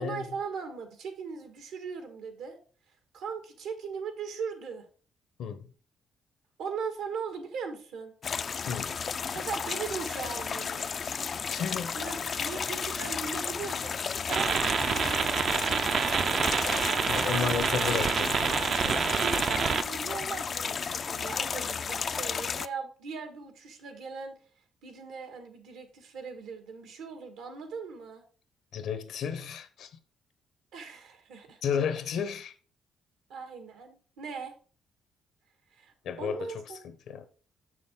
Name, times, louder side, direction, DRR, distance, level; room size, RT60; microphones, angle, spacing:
voice 1, 0.0-2.6 2.9-4.9 6.6-8.1 9.3-11.0 11.9-16.6 16.9-18.2 19.0-24.3 24.8-28.2 30.7-31.6 33.3-34.5 35.7-36.8, right 5 dB, 90° right, 1.7 m, -39 dB
sound 1, 8.2-22.7, left 6 dB, 45° left, 0.3 m, -33 dB
voice 2, 8.6-9.0 11.5-12.0 17.0-19.1 28.7-29.9 31.6-32.5 36.0-37.2, left 7 dB, 75° left, 1.0 m, -33 dB
sound 2, 14.3-19.8, right 6 dB, 55° right, 0.4 m, -27 dB
6.8 x 6.3 x 3.7 m
cardioid pair, 90°, 0 cm